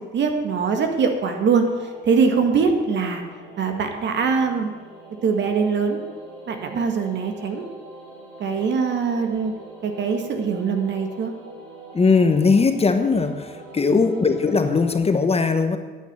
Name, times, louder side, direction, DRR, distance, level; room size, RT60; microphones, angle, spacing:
voice 1, 0.1-3.2 3.6-4.7 5.2-6.0 6.5-7.6 8.4-9.5 9.8-11.3 13.9-14.0, right 5 dB, 65° right, 5 dB, 1.7 m, -22 dB
sound 1, 1.5-15.0, right 2 dB, 85° right, 4.5 m, -43 dB
voice 2, 11.9-13.5 13.7-15.8, left 4 dB, 30° left, 8 dB, 1.2 m, -19 dB
9.2 x 9.0 x 7.3 m, 1.3 s
cardioid pair, 90°, 20 cm